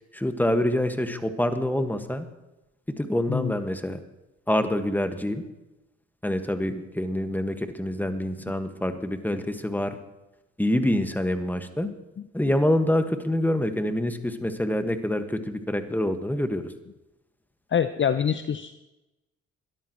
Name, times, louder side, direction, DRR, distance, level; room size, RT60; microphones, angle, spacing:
voice 1, 0.1-2.3 3.0-4.0 4.5-5.4 6.2-10.0 10.6-11.9 12.3-16.7, left 1 dB, 5° left, 8 dB, 1.7 m, -26 dB
voice 2, 17.7-18.7, left 8 dB, 35° left, 12 dB, 0.7 m, -25 dB
22.0 x 13.0 x 3.1 m, 1.0 s
hypercardioid pair, 45°, 36 cm